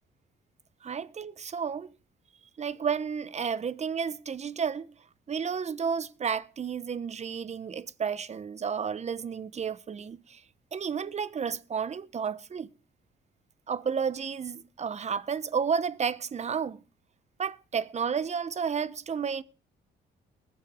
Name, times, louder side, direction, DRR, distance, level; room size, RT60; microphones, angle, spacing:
voice 1, 0.8-1.9 2.6-4.9 5.3-10.4 10.7-12.7 13.7-16.8 17.4-19.4, right 6 dB, 35° right, 0.8 m, -32 dB
20.5 x 7.7 x 3.6 m
cardioid pair, 90°, 20 cm